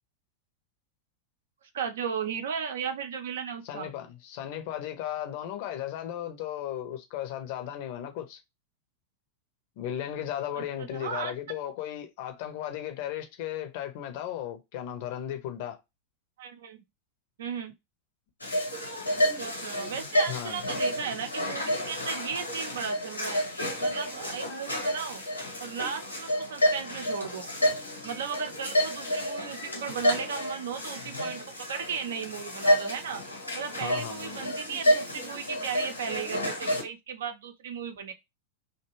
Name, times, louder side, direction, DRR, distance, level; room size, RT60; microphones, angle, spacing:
voice 1, 1.7-3.9 10.5-11.3 16.4-16.8 17.4-17.7 19.2-23.4 23.8-25.2 25.6-27.5 28.0-31.4 31.7-33.2 33.5-38.1, right 7 dB, 60° right, 0.6 m, -35 dB
voice 2, 3.6-8.4 9.8-15.8 20.3-20.6 33.8-34.5, left 11 dB, 50° left, 0.6 m, -36 dB
sound 1, 18.4-36.8, equal, 85° left, 1.1 m, -30 dB
2.6 x 2.3 x 2.9 m
figure-of-eight pair, 90°, 0 cm